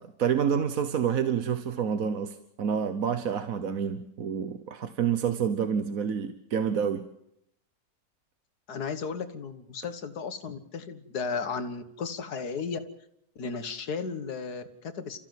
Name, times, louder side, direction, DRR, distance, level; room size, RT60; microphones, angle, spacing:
voice 1, 0.0-7.1, right 7 dB, 60° right, 1.4 m, -28 dB
voice 2, 8.7-12.8 13.4-15.2, left 5 dB, 75° left, 2.0 m, -34 dB
30.0 x 14.5 x 7.7 m
omnidirectional pair, 1.7 m